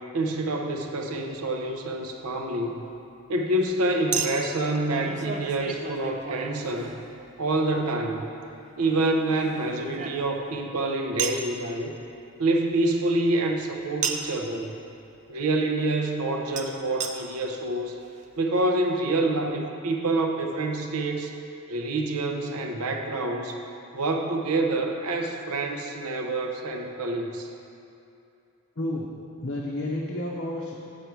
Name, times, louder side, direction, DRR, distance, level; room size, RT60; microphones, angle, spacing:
voice 1, 0.1-2.8 3.3-7.0 7.4-8.3 8.8-11.9 12.4-14.7 15.3-18.0 18.4-21.3 21.7-23.6 23.9-27.5, right 2 dB, 85° right, 4 dB, 0.6 m, -27 dB
Chink clink, 1.3-1.5 4.1-7.3 8.9-10.6 11.2-11.5 14.0-14.4 16.6-16.7 17.0-17.1 17.8-17.9 18.0-18.1, right 6 dB, 35° right, 0.4 m, -33 dB
voice 2, 28.8-29.1 29.4-30.7, left 1 dB, 50° left, -4 dB, 0.7 m, -30 dB
8.3 x 5.3 x 4.5 m, 2.7 s
head